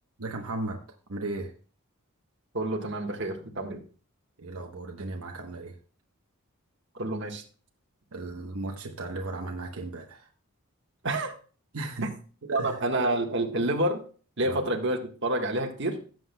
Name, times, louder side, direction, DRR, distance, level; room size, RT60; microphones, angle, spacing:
voice 1, 0.2-0.8 1.1-1.5 4.4-5.8 8.1-10.3 11.7-12.1 12.4-12.8 14.4-14.6, right 2 dB, 80° right, 2 dB, 1.1 m, -36 dB
voice 2, 2.5-3.8 6.9-7.4 11.0-11.3 12.5-14.0 14.4-16.0, right 1 dB, 55° right, 3 dB, 1.5 m, -28 dB
17.0 x 7.7 x 2.3 m, 0.40 s
head